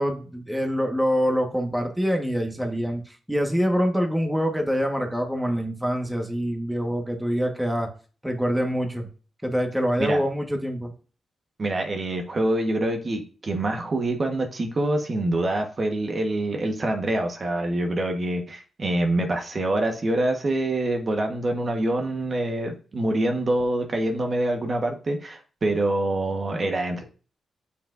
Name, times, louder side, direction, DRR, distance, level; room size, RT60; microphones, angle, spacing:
voice 1, 0.0-7.9 8.2-9.1 9.4-10.9, equal, 5° right, 3 dB, 1.4 m, -25 dB
voice 2, 11.6-27.0, right 1 dB, 45° right, 3 dB, 1.2 m, -25 dB
8.4 x 5.6 x 2.6 m, 0.39 s
cardioid pair, 75°, 0 cm